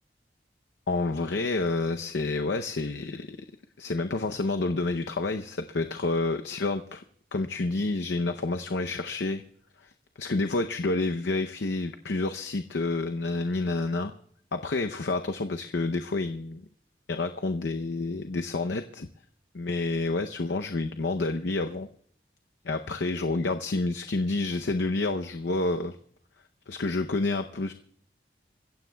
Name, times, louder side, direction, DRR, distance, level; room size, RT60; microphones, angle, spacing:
voice 1, 0.9-3.4 3.8-7.0 7.3-9.4 9.8-9.9 10.2-14.1 14.5-16.7 17.1-19.1 19.5-21.9 22.6-26.0 26.7-27.7, left 3 dB, 90° left, 7 dB, 0.7 m, -29 dB
28.0 x 15.5 x 2.3 m, 0.62 s
head